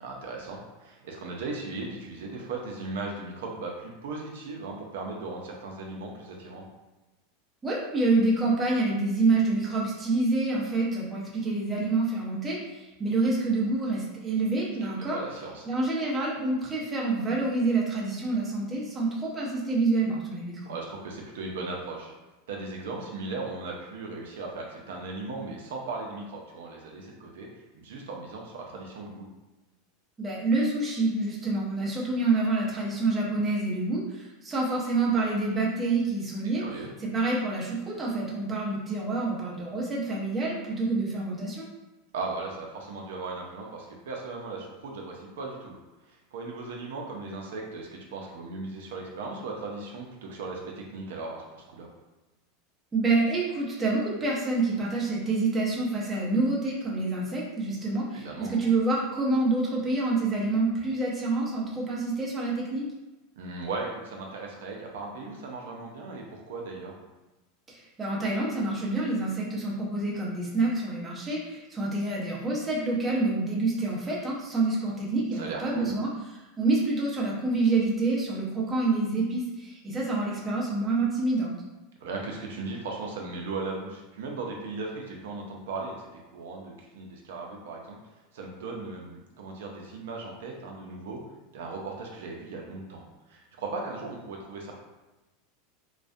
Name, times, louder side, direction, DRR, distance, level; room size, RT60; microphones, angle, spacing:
voice 1, 0.0-6.6 14.8-15.7 20.7-22.1 22.5-27.5 27.7-29.3 36.6-36.9 42.1-45.8 46.1-51.9 58.1-58.5 63.4-67.0 75.4-75.9 82.0-88.0 88.3-91.2 91.5-93.0 93.3-94.8, right 3 dB, 80° right, 0 dB, 0.4 m, -37 dB
voice 2, 7.6-15.2 15.7-20.7 30.2-36.6 37.0-41.7 52.9-62.9 67.7-76.1 76.6-81.5, right 3 dB, 15° right, -5 dB, 0.6 m, -27 dB
2.3 x 2.1 x 2.5 m, 1.1 s
supercardioid pair, 130°, 0 cm